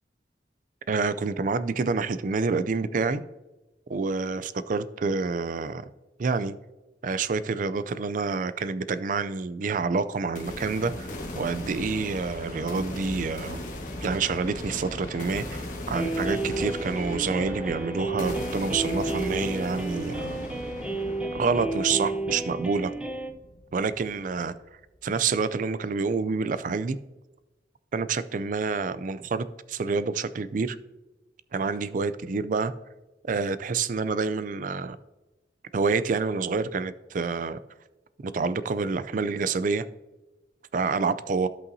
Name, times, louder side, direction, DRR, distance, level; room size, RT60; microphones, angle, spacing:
voice 1, 0.9-3.2 3.9-5.9 6.2-6.6 7.0-13.7 14.0-20.5 21.3-22.9 23.7-24.5 25.0-27.0 27.9-30.8 31.5-32.7 33.3-35.0 35.7-37.6 38.2-39.8 40.7-41.5, right 4 dB, 45° right, 0.4 m, -28 dB
sound 1, 10.4-24.3, left 1 dB, 45° left, 1.3 m, -37 dB
sound 2, 15.9-23.3, right 2 dB, 5° right, 0.6 m, -32 dB
15.5 x 5.5 x 2.7 m
head